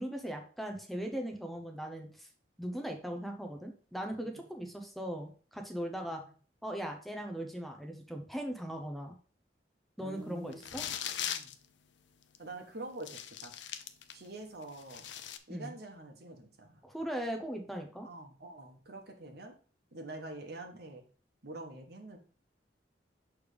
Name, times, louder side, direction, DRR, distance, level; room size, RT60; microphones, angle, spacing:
voice 1, 0.0-2.3 2.6-6.2 6.6-9.1 10.0-10.8 15.5-15.8 16.8-18.1, equal, ahead, 3 dB, 0.7 m, -39 dB
voice 2, 6.0-6.3 10.0-10.6 11.0-11.6 12.4-13.5 14.1-15.1 15.5-16.8 18.0-19.5 19.9-21.0 21.4-22.2, right 2 dB, 60° right, 4 dB, 1.2 m, -46 dB
sound 1, 10.5-11.6 12.3-12.4 13.0-14.3 14.6-15.4, left 10 dB, 80° left, 0.6 m, -39 dB
6.5 x 3.5 x 5.1 m, 0.40 s
head